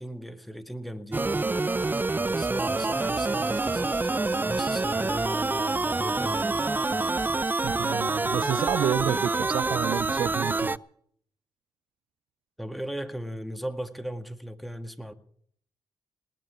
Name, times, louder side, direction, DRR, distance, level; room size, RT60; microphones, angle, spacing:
voice 1, 0.0-1.5 2.3-6.7 12.6-15.1, equal, ahead, 1.9 m, -37 dB
sound 1, 1.1-10.8, right 3 dB, 20° right, 0.5 m, -27 dB
voice 2, 7.6-10.8, right 10 dB, 70° right, 0.5 m, -29 dB
19.5 x 7.6 x 8.6 m
supercardioid pair, 50°, 9 cm